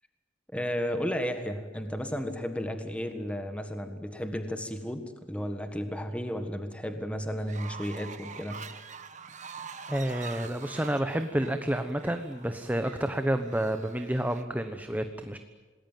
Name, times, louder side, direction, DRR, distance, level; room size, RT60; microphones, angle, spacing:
voice 1, 0.5-8.6, equal, 5° left, 7 dB, 1.6 m, -33 dB
Fowl, 7.4-14.4, right 5 dB, 40° right, 1.6 m, -45 dB
voice 2, 9.9-15.4, right 1 dB, 10° right, 7 dB, 1.1 m, -29 dB
27.5 x 20.0 x 9.3 m, 1.4 s
head